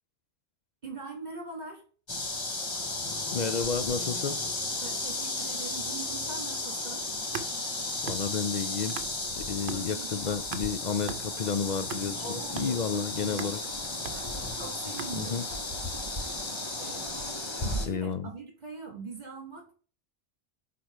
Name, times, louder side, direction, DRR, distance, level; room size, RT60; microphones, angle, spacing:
voice 1, 0.8-1.9 4.8-7.1 9.7-10.4 12.2-13.5 14.1-19.7, right 4 dB, 40° right, 2.2 m, -43 dB
sound 1, 2.1-17.9, left 2 dB, 25° left, 0.9 m, -34 dB
voice 2, 3.3-4.4 8.0-9.0 9.5-13.6 15.1-15.5 17.9-18.3, left 6 dB, 60° left, 0.4 m, -31 dB
sound 2, 7.0-9.4 9.7-15.6, right 6 dB, 65° right, 1.0 m, -42 dB
6.3 x 4.2 x 4.5 m
omnidirectional pair, 1.2 m